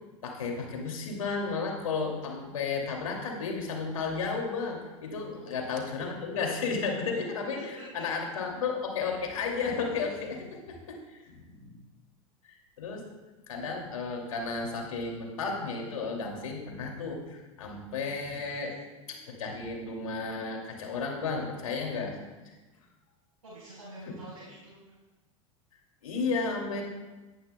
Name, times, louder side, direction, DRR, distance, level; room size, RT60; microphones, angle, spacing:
voice 1, 0.2-11.8 12.4-13.0 13.5-18.8 19.1-22.1 22.4-22.5 24.1-24.2 26.0-26.8, left 4 dB, 75° left, 1 dB, 2.5 m, -33 dB
voice 2, 5.4-5.9 7.8-8.0 10.2-10.3 23.4-25.0, right 1 dB, 90° right, -8 dB, 4.1 m, -48 dB
18.0 x 11.0 x 2.2 m, 1.2 s
hypercardioid pair, 85°, 17 cm